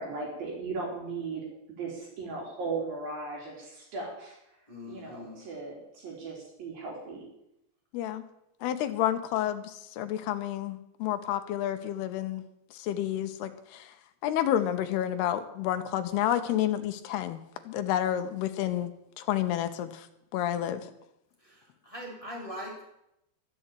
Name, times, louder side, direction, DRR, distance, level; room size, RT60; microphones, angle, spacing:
voice 1, 0.0-4.4 4.9-7.2, right 4 dB, 55° right, -2 dB, 4.9 m, -37 dB
voice 2, 4.7-5.4 21.4-22.9, equal, 10° left, -3 dB, 3.4 m, -42 dB
voice 3, 8.6-12.4 12.7-13.9 14.2-17.4 17.7-18.9 19.2-20.1 20.3-20.8, left 11 dB, 75° left, 9 dB, 2.6 m, -30 dB
12.5 x 8.0 x 8.9 m, 0.82 s
omnidirectional pair, 5.2 m